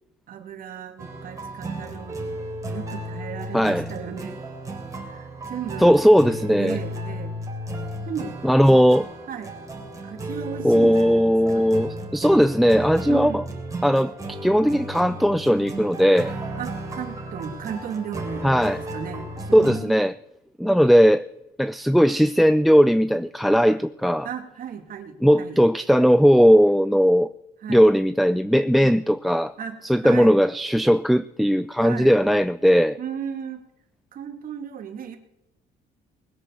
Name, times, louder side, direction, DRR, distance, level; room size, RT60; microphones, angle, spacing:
voice 1, 0.3-2.3 2.7-4.4 5.0-5.9 6.6-7.4 8.1-8.3 9.3-9.6 10.0-11.6 13.1-13.5 16.6-18.5 18.8-20.0 24.2-25.6 27.6-27.9 28.8-29.0 29.6-30.4 31.8-32.2 33.0-33.6 34.1-35.2, right 8 dB, 55° right, 2.5 m, -35 dB
sound 1, 1.0-19.8, right 1 dB, 20° right, 3.9 m, -34 dB
voice 2, 3.5-3.8 5.8-6.8 8.4-9.1 10.6-13.4 13.8-14.1 14.4-16.3 18.4-18.8 19.5-20.1 20.6-21.3 21.6-24.3 25.2-27.3 27.7-29.5 29.8-33.0, equal, ahead, 0.4 m, -18 dB
20.5 x 7.8 x 6.9 m
cardioid pair, 110°, 17 cm